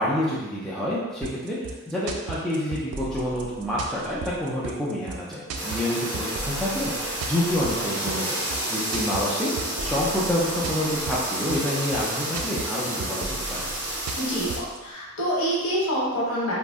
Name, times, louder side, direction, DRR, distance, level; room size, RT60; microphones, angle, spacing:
voice 1, 0.0-8.4 8.7-13.7, left 1 dB, ahead, -8 dB, 0.4 m, -28 dB
sound 1, 1.2-14.8, right 3 dB, 85° right, 0.3 m, -36 dB
sound 2, 5.5-14.6, right 1 dB, 50° right, 0.8 m, -30 dB
voice 2, 14.2-14.5 14.8-16.5, equal, 70° left, -6 dB, 0.9 m, -26 dB
2.5 x 2.0 x 3.4 m, 1.1 s
head